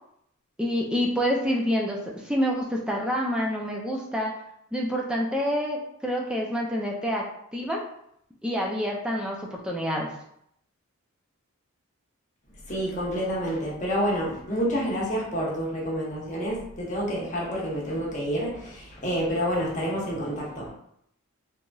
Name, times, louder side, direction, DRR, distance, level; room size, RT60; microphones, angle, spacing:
voice 1, 0.6-4.3 4.7-7.2 7.5-7.8 8.4-10.1, equal, 5° right, -2 dB, 0.3 m, -27 dB
voice 2, 12.7-20.7, equal, 35° left, -5 dB, 0.7 m, -28 dB
2.9 x 2.5 x 2.2 m, 0.74 s
head